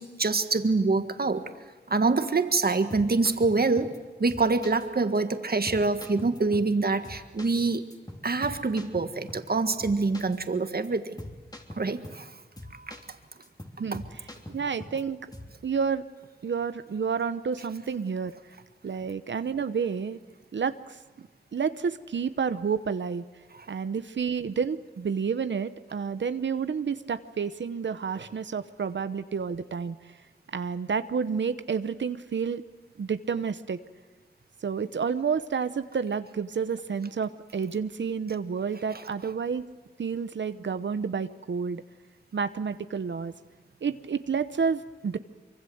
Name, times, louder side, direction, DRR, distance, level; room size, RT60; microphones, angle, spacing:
voice 1, 0.0-1.4 1.9-3.9 4.2-7.8 8.2-11.2 11.7-12.3 12.7-13.0 28.2-28.3, right 3 dB, 60° right, 8 dB, 1.7 m, -25 dB
sound 1, 2.9-4.0 4.3-4.9 5.1-5.2 5.7-6.8 7.0-9.5 9.8-10.4 10.7-10.9 11.2-12.3 12.6-13.1 13.4-15.0 15.3-15.6, left 1 dB, 20° left, 3.3 m, -43 dB
voice 2, 14.5-15.2 15.6-16.0 16.4-18.3 18.8-20.2 20.5-21.0 21.5-23.2 23.7-30.2 30.5-32.6 33.0-33.8 34.6-39.6 40.0-41.8 42.3-43.3 43.8-45.2, right 6 dB, 85° right, 11 dB, 0.9 m, -30 dB
24.5 x 24.0 x 7.9 m, 1.3 s
cardioid pair, 50°, 18 cm